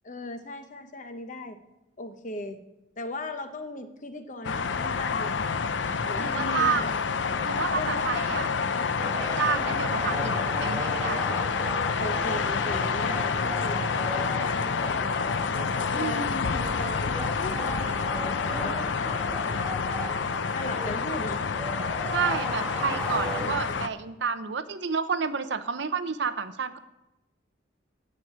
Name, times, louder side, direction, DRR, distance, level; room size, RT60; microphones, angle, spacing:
voice 1, 0.0-1.6 2.0-2.6 3.0-5.4 6.0-6.9 7.3-8.4 12.0-13.8 14.2-15.3 15.6-19.7 20.5-21.4 23.4-23.8, left 1 dB, 40° left, 8 dB, 0.8 m, -38 dB
sound 1, 4.4-23.9, left 5 dB, 65° left, 0.5 m, -28 dB
voice 2, 6.2-6.8 7.4-8.5 9.2-11.3 15.9-16.4 22.1-26.8, right 5 dB, 65° right, 11 dB, 0.6 m, -30 dB
sound 2, 9.0-24.0, equal, 5° left, 1.4 m, -37 dB
9.1 x 6.5 x 8.6 m, 0.96 s
head